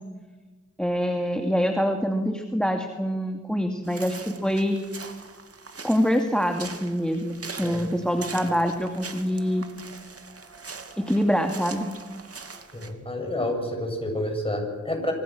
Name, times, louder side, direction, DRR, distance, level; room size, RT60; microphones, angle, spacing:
voice 1, 0.8-4.8 5.8-9.7 11.0-11.9, equal, 5° left, 4 dB, 2.5 m, -25 dB
sound 1, 3.8-12.9, right 4 dB, 55° right, 2.7 m, -42 dB
voice 2, 7.6-7.9 12.7-15.1, left 1 dB, 20° left, 3 dB, 7.5 m, -29 dB
26.5 x 25.5 x 6.3 m, 1.3 s
cardioid pair, 70°, 29 cm